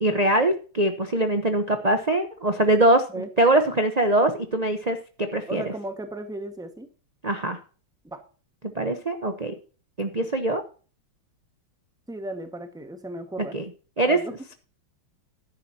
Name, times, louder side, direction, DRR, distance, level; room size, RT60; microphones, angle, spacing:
voice 1, 0.0-5.6 7.2-7.6 8.7-9.5 10.0-10.6 13.5-13.6 14.0-14.5, right 1 dB, 40° right, 6 dB, 0.6 m, -23 dB
voice 2, 5.5-6.9 8.0-8.2 12.1-13.6 14.1-14.3, right 1 dB, ahead, 7 dB, 1.2 m, -35 dB
13.0 x 10.5 x 2.8 m, 0.37 s
omnidirectional pair, 2.2 m